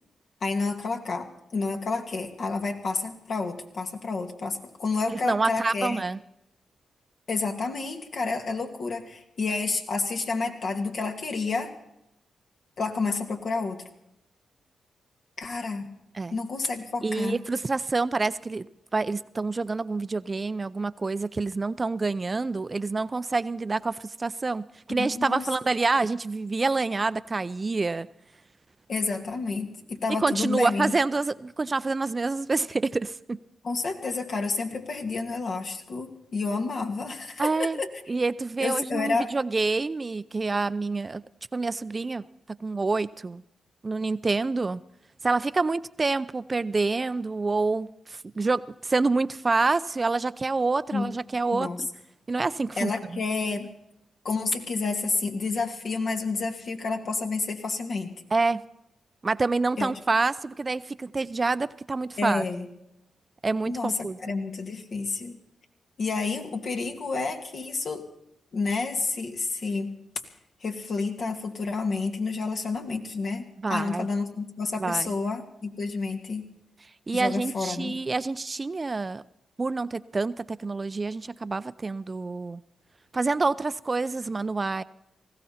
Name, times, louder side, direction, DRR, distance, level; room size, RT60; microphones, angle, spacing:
voice 1, 0.4-6.0 7.3-11.7 12.8-13.8 15.4-15.9 16.3-17.4 24.9-25.5 28.9-30.9 33.6-37.9 38.6-39.3 50.9-51.1 51.5-51.8 52.8-53.7 54.2-58.1 59.8-59.9 62.2-62.7 63.7-63.9 64.2-65.4 66.0-68.0 68.5-69.9 70.6-76.5 77.1-78.0, left 4 dB, 65° left, 2.5 m, -30 dB
voice 2, 5.1-6.2 16.1-16.3 17.0-18.7 18.9-28.1 30.1-33.4 37.4-37.8 38.1-41.2 41.5-42.2 42.6-43.4 43.8-44.8 45.2-51.9 52.3-53.2 58.3-58.6 59.2-62.4 63.4-64.2 73.6-74.1 74.8-75.1 77.1-79.2 79.6-82.6 83.1-84.8, right 3 dB, 35° right, 0.6 m, -27 dB
19.5 x 16.0 x 4.3 m
supercardioid pair, 55°, 0 cm